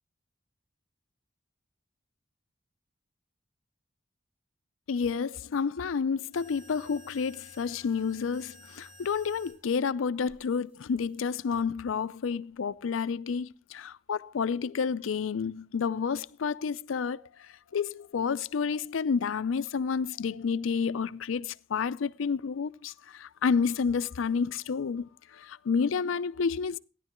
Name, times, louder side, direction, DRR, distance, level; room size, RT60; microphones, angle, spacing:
voice 1, 4.9-17.2 17.7-26.8, left 5 dB, 90° left, 0.4 m, -30 dB
sound 1, 6.3-9.6 10.3-11.3, left 1 dB, 30° right, 4.9 m, -54 dB
15.0 x 10.5 x 3.0 m
head